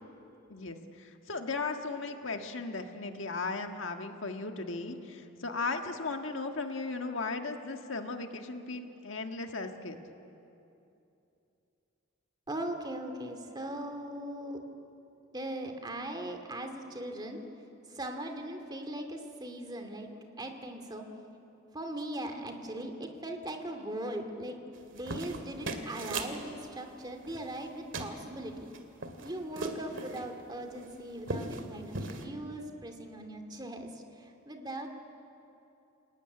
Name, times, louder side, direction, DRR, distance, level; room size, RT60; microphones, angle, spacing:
voice 1, 0.5-10.0, left 3 dB, 65° left, 5 dB, 1.6 m, -36 dB
voice 2, 12.5-14.6 15.3-17.4 17.9-21.0 21.7-24.6 24.9-28.7 29.2-34.9, right 1 dB, 20° right, 5 dB, 2.3 m, -39 dB
sound 1, 24.7-26.4 27.2-27.7 27.9-28.1 28.6-30.3 30.7-30.9 31.2-31.6 31.9-32.2, right 3 dB, 65° right, 2.2 m, -37 dB
27.5 x 18.5 x 9.7 m, 2.8 s
head